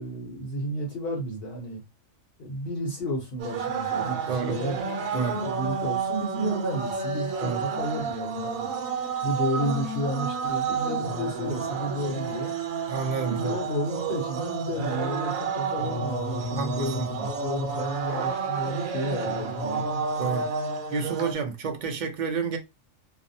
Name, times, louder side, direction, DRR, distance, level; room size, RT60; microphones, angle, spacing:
voice 1, 0.0-1.8 2.4-4.8 5.1-8.7 9.2-12.5 13.3-17.0 17.4-19.9, equal, 55° left, 0.8 m, -32 dB
sound 1, 3.4-21.3, right 5 dB, 90° right, 1.0 m, -30 dB
voice 2, 12.9-13.5 16.6-17.3 20.2-20.6 20.9-22.6, right 5 dB, 55° right, 0.5 m, -30 dB
2.5 x 2.0 x 2.6 m
omnidirectional pair, 1.4 m